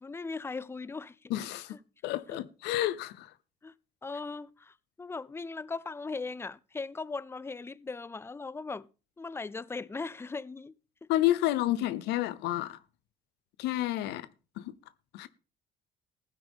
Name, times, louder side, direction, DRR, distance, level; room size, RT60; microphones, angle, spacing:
voice 1, 0.0-1.2 1.7-1.8 2.3-2.4 3.6-3.7 4.0-8.9 9.2-11.1, left 4 dB, 15° left, 0.5 m, -39 dB
voice 2, 1.3-1.8 2.0-3.3 11.1-12.8 13.6-14.3 14.6-14.7 15.1-15.3, left 14 dB, 85° left, 0.7 m, -30 dB
15.5 x 10.0 x 3.6 m
cardioid pair, 110°, 17 cm